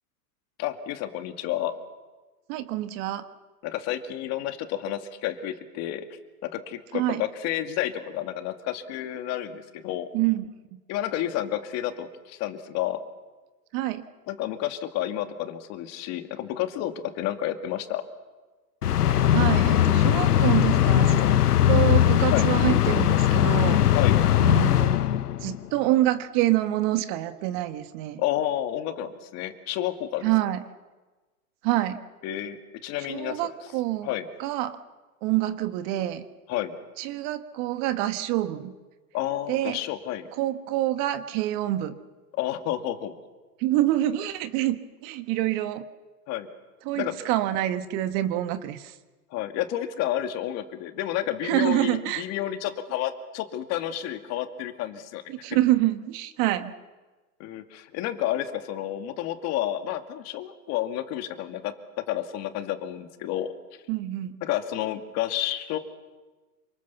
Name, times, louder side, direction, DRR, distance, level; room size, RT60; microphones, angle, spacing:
voice 1, 0.6-1.7 3.6-6.1 6.4-10.1 10.9-13.0 14.3-18.0 22.3-22.5 23.9-24.2 28.2-30.3 32.2-32.6 32.8-33.4 34.0-34.3 36.5-36.7 39.1-40.3 42.3-43.1 46.3-46.5 46.9-47.2 49.3-55.2 57.4-61.7 62.1-63.5 64.4-65.8, left 12 dB, 35° left, 7 dB, 2.3 m, -30 dB
voice 2, 2.5-3.2 6.9-7.2 10.1-10.5 13.7-14.0 19.3-21.3 21.7-23.8 24.4-25.0 25.4-28.2 30.2-30.6 31.6-32.0 33.1-34.1 34.4-34.8 35.2-36.2 37.0-38.7 39.5-39.8 40.4-41.9 43.6-45.9 46.8-48.9 51.4-52.2 55.3-56.7 63.9-64.4, right 15 dB, 40° right, 10 dB, 1.5 m, -26 dB
sound 1, 18.8-25.6, left 11 dB, 90° left, 1.2 m, -20 dB
28.5 x 26.0 x 7.1 m, 1.2 s
hypercardioid pair, 135°, 45 cm